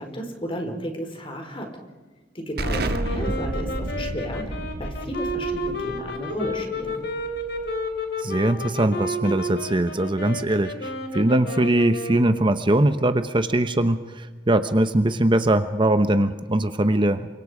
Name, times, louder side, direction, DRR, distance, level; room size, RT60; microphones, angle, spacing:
voice 1, 0.0-1.7 2.3-7.0, equal, 30° left, 4 dB, 4.4 m, -33 dB
sound 1, 2.6-12.6, left 1 dB, 70° left, 3.3 m, -31 dB
Explosion, 2.6-8.0, right 1 dB, 65° right, 1.4 m, -31 dB
voice 2, 8.2-17.3, right 1 dB, 30° right, 10 dB, 0.9 m, -21 dB
28.5 x 25.0 x 5.0 m, 1.3 s
head